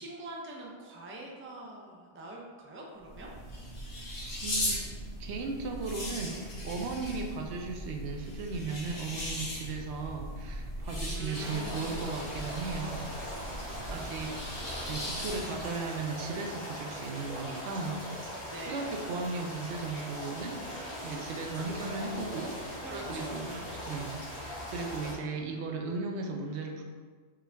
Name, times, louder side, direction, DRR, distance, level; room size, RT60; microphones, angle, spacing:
voice 1, 0.0-3.3 4.0-4.1 11.1-12.2 13.8-14.5 18.5-19.0 22.8-23.8, right 2 dB, 20° right, -2 dB, 0.4 m, -45 dB
sound 1, 3.0-15.7, left 1 dB, 40° left, 1.0 m, -38 dB
voice 2, 4.4-4.8 5.2-13.1 13.9-14.4 14.9-26.8, right 4 dB, 90° right, 2 dB, 0.9 m, -37 dB
sound 2, 11.4-25.1, equal, 65° left, 1.8 m, -40 dB
4.9 x 2.4 x 3.4 m, 1.5 s
omnidirectional pair, 1.1 m